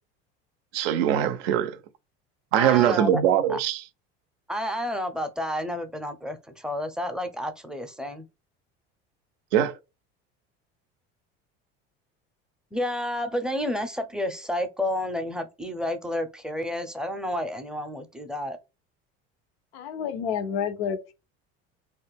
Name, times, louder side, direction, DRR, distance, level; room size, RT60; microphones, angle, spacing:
voice 1, 0.7-1.8 2.5-3.8 9.5-9.7, right 10 dB, 90° right, 0.5 m, -22 dB
voice 2, 2.6-3.2 3.5-3.6 4.5-8.3 12.7-18.6, left 1 dB, ahead, 0.4 m, -30 dB
voice 3, 19.7-21.1, left 7 dB, 90° left, 0.6 m, -29 dB
2.4 x 2.1 x 3.3 m
supercardioid pair, 95°, 30 cm